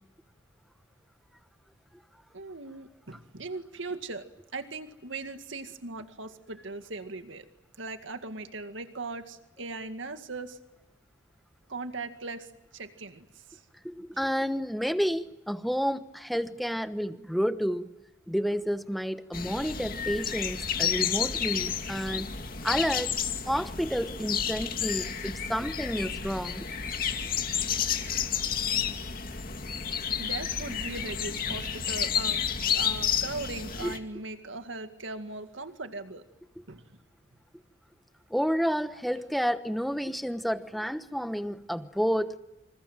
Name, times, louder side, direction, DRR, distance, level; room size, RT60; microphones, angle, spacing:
voice 1, 2.3-4.3 4.5-7.5 7.8-10.6 11.7-13.6 30.1-32.4 32.7-36.2 36.7-37.0, right 3 dB, 80° right, 8 dB, 2.1 m, -39 dB
voice 2, 13.8-17.9 18.3-23.1 23.4-26.7 31.5-31.6 33.8-33.9 38.3-42.4, equal, ahead, 11 dB, 1.1 m, -30 dB
sound 1, 19.3-34.0, left 7 dB, 50° left, 2.5 m, -31 dB
27.5 x 27.0 x 7.6 m, 0.93 s
head